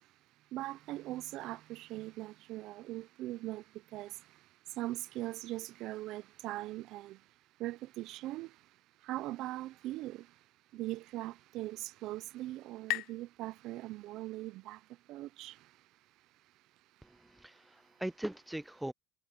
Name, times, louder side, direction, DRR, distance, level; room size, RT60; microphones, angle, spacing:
voice 1, 0.5-3.6 3.9-4.2 4.8-7.2 7.6-8.5 9.0-10.3 10.7-14.8 15.1-15.6, right 16 dB, 60° right, 0.7 m, -40 dB
sound 1, 11.4-14.8, left 20 dB, 65° left, 0.4 m, -43 dB
voice 2, 17.0-18.9, right 1 dB, 5° right, 0.3 m, -40 dB
supercardioid pair, 105°, 0 cm